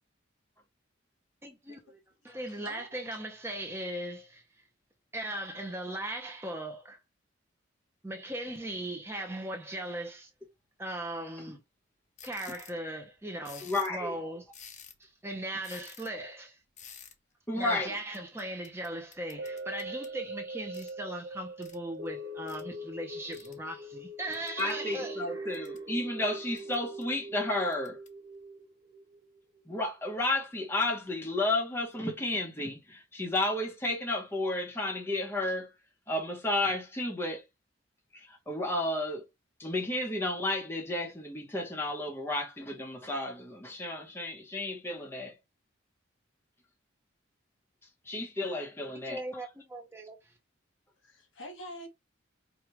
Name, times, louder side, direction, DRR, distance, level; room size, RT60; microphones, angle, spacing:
voice 1, 1.4-2.0 2.2-4.4 5.1-7.0 8.0-10.3 10.8-11.6 12.2-14.4 15.0-16.6 17.5-25.6 49.1-50.3, right 1 dB, 10° right, 0.7 m, -38 dB
voice 2, 2.2-3.0 51.0-51.9, equal, 75° left, 1.5 m, -46 dB
sound 1, 12.2-12.8 13.4-14.0 14.5-15.1 15.6-16.1 16.8-17.1 18.1-20.2 20.7-21.0 21.6-21.8 22.5-22.6 23.3-23.5 24.3-24.8 25.3-25.8 26.6-27.0 27.7-28.1, left 8 dB, 35° left, 0.6 m, -51 dB
voice 3, 13.6-14.2 17.5-18.0 24.6-28.0 29.7-35.8 36.1-37.4 38.1-39.3 39.6-45.4 48.0-49.2, left 2 dB, 10° left, 1.0 m, -32 dB
sound 2, 19.4-29.7 30.2-30.3, right 1 dB, 75° right, 1.5 m, -42 dB
4.9 x 2.4 x 3.0 m
head